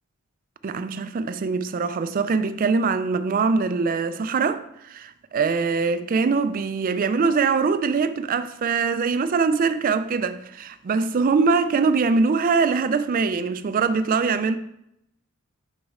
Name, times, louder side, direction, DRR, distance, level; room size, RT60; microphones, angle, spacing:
voice 1, 0.6-14.6, right 4 dB, 40° right, 0.3 m, -23 dB
6.2 x 5.2 x 3.6 m
head